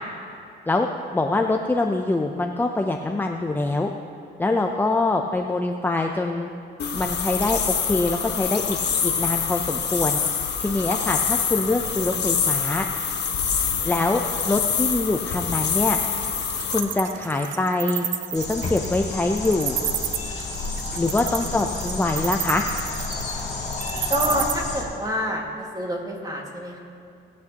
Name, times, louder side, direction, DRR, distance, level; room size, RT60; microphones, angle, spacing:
voice 1, 1.1-3.9 4.4-6.5 6.9-8.8 9.0-10.2 10.6-12.9 13.8-16.0 16.7-18.0 18.3-19.8 21.0-22.6, left 2 dB, 10° left, 3 dB, 0.6 m, -24 dB
sound 1, 6.8-16.8, left 6 dB, 60° left, 1.3 m, -25 dB
Wild animals, 15.9-24.5, right 11 dB, 75° right, 0.6 m, -30 dB
sound 2, 18.3-24.8, left 3 dB, 35° left, 2.2 m, -31 dB
voice 2, 24.1-26.8, equal, 20° right, 0 dB, 2.0 m, -28 dB
19.0 x 8.3 x 3.0 m, 2.6 s
cardioid pair, 90°, 20 cm